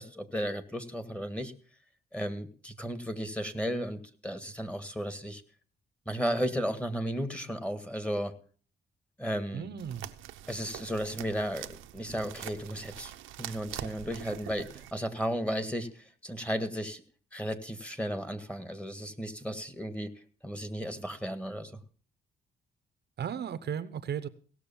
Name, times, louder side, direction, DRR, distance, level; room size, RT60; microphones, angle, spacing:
voice 1, 0.0-1.5 2.1-5.4 6.0-8.3 9.2-9.7 10.5-11.7 11.9-13.1 13.4-17.0 17.3-20.1 20.4-21.7, equal, 5° left, 9 dB, 1.7 m, -34 dB
voice 2, 9.5-10.1 23.2-24.3, right 8 dB, 55° right, 13 dB, 0.9 m, -35 dB
sound 1, 9.8-14.9, right 13 dB, 85° right, 0.9 m, -44 dB
17.0 x 6.6 x 7.1 m, 0.43 s
cardioid pair, 90°, 20 cm